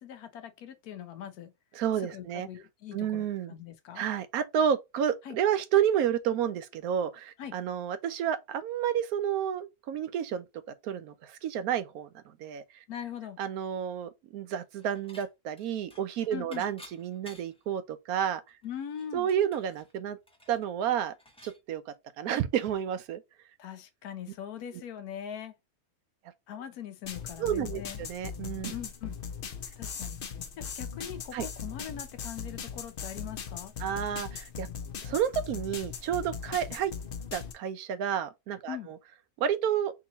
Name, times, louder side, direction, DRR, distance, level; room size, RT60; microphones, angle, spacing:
voice 1, 0.0-1.5 2.1-4.0 5.2-5.4 7.4-7.5 12.9-13.4 16.3-16.6 18.6-19.3 23.6-25.5 26.5-28.0 28.7-29.1 29.8-30.2 30.6-33.7 38.7-38.9, left 9 dB, 80° left, 1.2 m, -41 dB
voice 2, 1.7-2.5 2.9-3.5 3.9-10.5 10.8-12.6 13.4-18.4 19.1-20.2 20.5-21.1 21.4-21.8 22.2-23.2 27.4-28.7 31.3-31.5 33.8-34.7 35.0-36.9 37.3-39.0 39.4-39.9, right 9 dB, 80° right, 1.1 m, -30 dB
Dishes pots and pans / Chink clink, 14.5-15.3 15.6-17.7 18.1-18.2 18.5-21.6, equal, 5° left, 0.7 m, -54 dB
sound 1, 27.0-37.5, left 7 dB, 50° left, 0.7 m, -39 dB
3.7 x 2.9 x 3.9 m
omnidirectional pair, 1.6 m